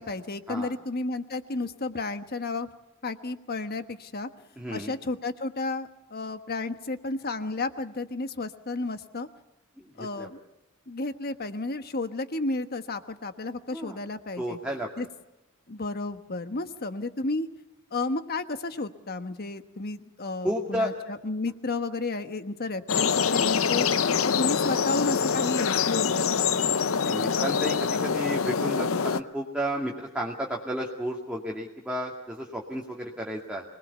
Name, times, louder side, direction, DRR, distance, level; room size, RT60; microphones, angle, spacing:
voice 1, 0.0-2.7 3.0-4.3 4.7-9.3 10.0-10.4 10.9-14.6 15.0-15.1 15.7-17.5 17.9-23.9 24.2-26.5, left 3 dB, 50° left, 8 dB, 1.3 m, -32 dB
voice 2, 4.6-4.9 10.2-10.3 13.7-14.0 14.4-15.0 20.4-20.9 27.0-33.6, equal, 5° right, -2 dB, 2.2 m, -32 dB
sound 1, 22.9-29.2, left 6 dB, 75° left, 0.7 m, -25 dB
25.5 x 20.0 x 7.0 m, 0.99 s
head